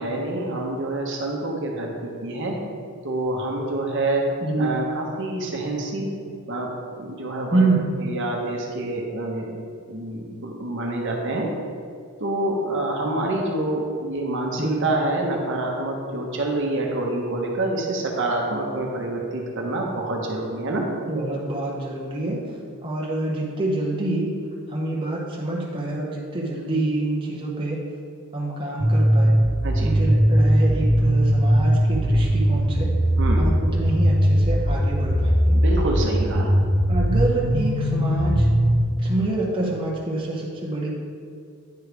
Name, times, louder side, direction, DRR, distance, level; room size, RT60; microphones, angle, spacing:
voice 1, 0.0-2.5 3.0-4.2 4.6-6.1 6.5-6.7 7.0-7.7 8.0-9.5 9.9-11.5 12.2-20.9 29.6-29.9 33.2-33.5 35.5-36.5, right 2 dB, 55° right, 0 dB, 0.9 m, -27 dB
voice 2, 4.4-4.7 7.5-8.0 14.6-14.9 21.1-22.4 22.8-24.3 24.7-27.8 28.3-29.3 29.8-32.9 33.4-35.6 36.0-36.3 36.9-38.5 39.0-40.9, right 2 dB, 20° right, -4 dB, 0.8 m, -26 dB
sound 1, 28.8-38.8, equal, 15° left, 1.2 m, -19 dB
9.3 x 3.2 x 4.9 m, 2.2 s
head